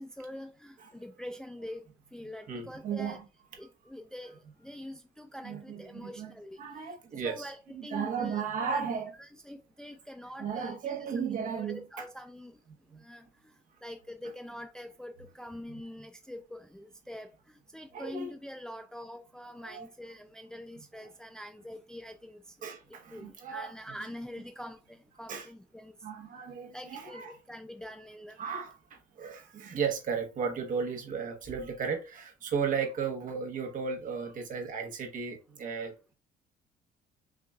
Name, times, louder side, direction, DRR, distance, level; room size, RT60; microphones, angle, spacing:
voice 1, 0.0-3.2 3.6-6.6 7.2-8.8 9.1-10.8 11.3-12.6 13.0-13.5 13.8-22.5 22.9-25.9 26.7-28.5, left 1 dB, 5° left, 0.4 m, -45 dB
voice 2, 2.5-3.2 5.4-6.3 6.6-9.1 10.4-12.0 12.9-13.0 17.9-18.3 19.6-19.9 22.6-23.7 25.3-25.5 26.0-27.3 28.4-36.1, right 6 dB, 50° right, 1.2 m, -35 dB
5.8 x 2.5 x 2.4 m
cardioid pair, 110°, 17 cm